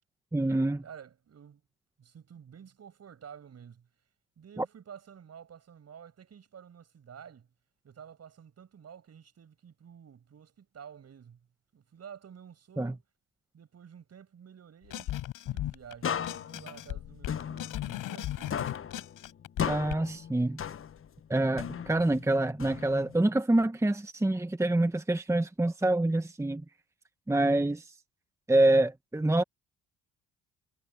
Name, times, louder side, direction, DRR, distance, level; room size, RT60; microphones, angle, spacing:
voice 1, 0.3-0.8 4.6-4.7 12.8-12.9 19.7-20.6 21.3-26.6 27.3-28.0 28.5-29.4, right 2 dB, 10° right, 1.3 m, -26 dB
voice 2, 0.8-1.6 2.0-3.9 4.4-7.5 7.8-11.5 11.7-13.0 13.5-18.7, right 8 dB, 45° right, 7.7 m, -51 dB
sound 1, 14.9-15.9 16.2-19.9, left 14 dB, 70° left, 5.7 m, -37 dB
sound 2, 16.0-18.2 18.5-21.2 21.6-23.2, left 8 dB, 40° left, 1.2 m, -36 dB
supercardioid pair, 70°, 34 cm